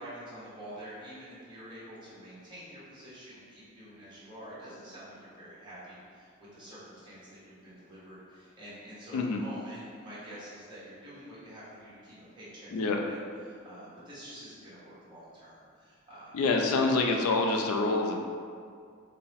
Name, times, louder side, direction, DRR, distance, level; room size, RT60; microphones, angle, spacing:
voice 1, 0.0-16.4, equal, 20° right, -11 dB, 1.2 m, -47 dB
voice 2, 16.3-18.2, left 3 dB, 75° left, 2 dB, 0.4 m, -26 dB
4.4 x 2.0 x 3.3 m, 2.2 s
head